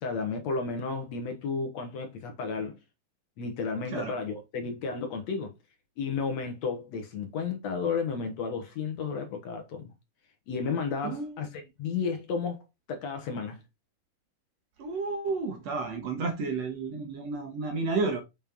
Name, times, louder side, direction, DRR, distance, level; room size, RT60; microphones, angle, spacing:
voice 1, 0.0-2.8 3.4-5.5 6.0-9.9 10.5-11.5 11.8-12.6 12.9-13.6, left 5 dB, 60° left, 2.1 m, -32 dB
voice 2, 11.0-11.4 14.8-18.2, right 3 dB, 60° right, 2.2 m, -31 dB
7.3 x 5.4 x 3.6 m
omnidirectional pair, 3.8 m